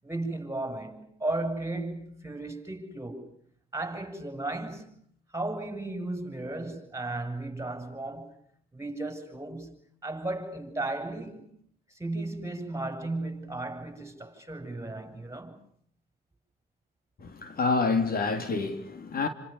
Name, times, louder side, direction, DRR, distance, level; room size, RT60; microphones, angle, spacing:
voice 1, 0.0-3.3 3.7-4.9 5.3-8.4 8.7-11.5 11.9-15.6, right 2 dB, 15° right, 7.9 m, -35 dB
voice 2, 17.2-19.3, left 4 dB, 50° left, 3.3 m, -28 dB
30.0 x 26.5 x 7.0 m
cardioid pair, 90°, 20 cm